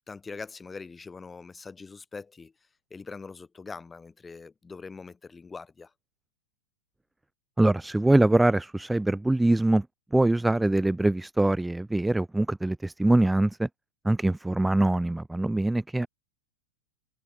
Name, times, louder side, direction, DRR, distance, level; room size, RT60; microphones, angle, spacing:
voice 1, 0.1-2.5 2.9-5.9, left 4 dB, 10° left, 4.8 m, -42 dB
voice 2, 7.6-9.9 10.1-13.7 14.0-16.1, right 2 dB, 5° right, 0.5 m, -23 dB
supercardioid pair, 145°, 0 cm